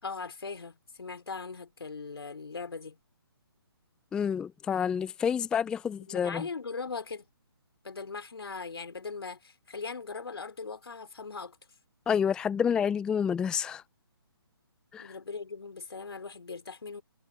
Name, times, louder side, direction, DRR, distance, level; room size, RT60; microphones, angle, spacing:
voice 1, 0.0-3.0 6.1-7.3 7.8-11.6 15.0-17.0, left 4 dB, 75° left, 4.3 m, -39 dB
voice 2, 4.1-6.4 12.1-13.8 14.9-15.1, left 7 dB, 5° left, 0.5 m, -28 dB
figure-of-eight pair, 150°, 13 cm